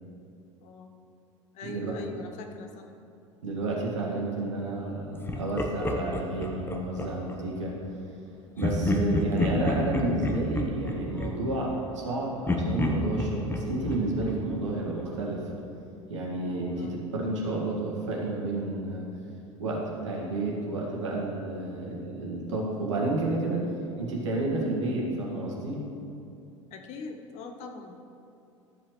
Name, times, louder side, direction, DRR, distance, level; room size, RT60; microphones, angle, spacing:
voice 1, 0.6-0.9 1.5-2.9 16.7-17.0 26.7-28.0, left 4 dB, 45° left, 4 dB, 0.9 m, -42 dB
voice 2, 3.4-7.8 8.6-15.5 16.1-19.1 19.6-23.6 24.0-25.8, right 2 dB, 70° right, -2 dB, 1.8 m, -31 dB
Laughter, 5.3-7.4 8.6-12.1 12.5-15.2, left 2 dB, 15° left, 0.9 m, -30 dB
13.0 x 7.5 x 3.2 m, 2.7 s
figure-of-eight pair, 75°, 16 cm